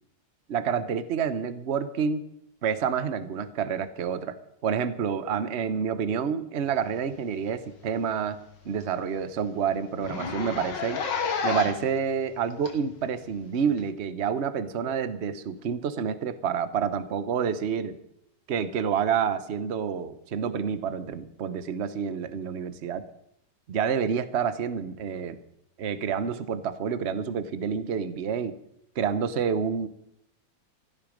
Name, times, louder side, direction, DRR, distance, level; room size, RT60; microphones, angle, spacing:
voice 1, 0.5-2.3 2.6-4.4 4.6-8.4 8.6-11.0 11.4-18.0 18.5-23.0 23.7-25.4 25.8-28.6 29.0-29.9, right 7 dB, 45° right, 12 dB, 0.9 m, -28 dB
Zipper (clothing), 7.3-7.5 7.9-8.0 8.3-8.4 8.8-8.9 9.1-9.3 9.9-11.9 12.7-12.8 13.8-13.9, left 5 dB, 60° left, 2.1 m, -30 dB
16.5 x 13.5 x 5.3 m, 0.76 s
omnidirectional pair, 2.2 m